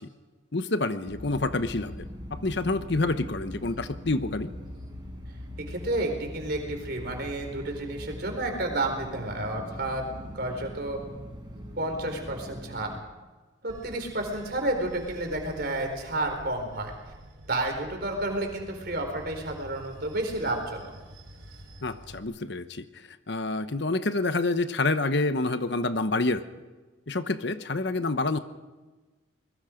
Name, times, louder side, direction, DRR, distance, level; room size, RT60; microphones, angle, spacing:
voice 1, 0.5-1.9 2.3-4.5 21.8-22.8 23.3-26.4 27.1-28.4, left 2 dB, 60° left, 11 dB, 1.0 m, -27 dB
atmosphere - interior village (mower), 1.1-13.0, equal, 25° right, 4.4 m, -41 dB
voice 2, 5.6-10.0 10.3-11.0 11.8-12.9 13.6-16.9 17.5-20.9, right 2 dB, 50° right, 4 dB, 4.2 m, -31 dB
Bell / Train, 13.7-22.2, equal, 85° right, 4.4 m, -47 dB
24.5 x 21.5 x 5.2 m, 1.2 s
head